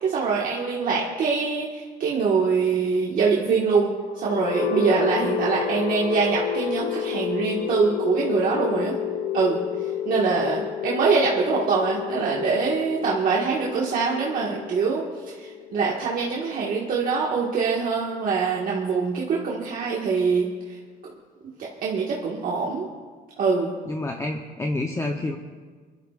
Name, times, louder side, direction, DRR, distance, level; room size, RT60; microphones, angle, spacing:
voice 1, 0.0-3.9 4.2-8.9 9.3-9.6 10.0-20.5 21.6-22.9 23.4-23.7, right 5 dB, 55° right, -4 dB, 1.7 m, -24 dB
sound 1, 4.1-18.0, left 9 dB, 55° left, 0.6 m, -31 dB
voice 2, 23.9-25.4, left 2 dB, 15° left, 3 dB, 0.8 m, -28 dB
26.5 x 12.0 x 2.5 m, 1.5 s
cardioid pair, 110°, 17 cm